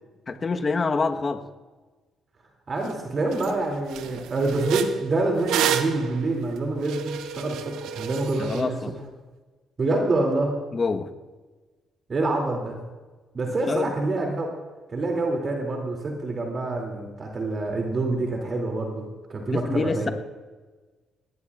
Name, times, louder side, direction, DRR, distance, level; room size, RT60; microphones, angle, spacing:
voice 1, 0.3-1.4 8.4-8.9 10.7-11.1 13.7-13.9 19.5-20.1, left 4 dB, 40° left, 7 dB, 1.2 m, -26 dB
voice 2, 2.7-8.9 9.8-10.5 12.1-12.8 13.3-14.5 14.9-19.0 19.3-20.1, right 2 dB, 45° right, 1 dB, 2.6 m, -26 dB
sound 1, 2.9-3.0 3.3-3.5 3.9-8.6, right 9 dB, 75° right, 0.9 m, -30 dB
20.5 x 17.5 x 2.4 m, 1.3 s
hypercardioid pair, 50°, 0 cm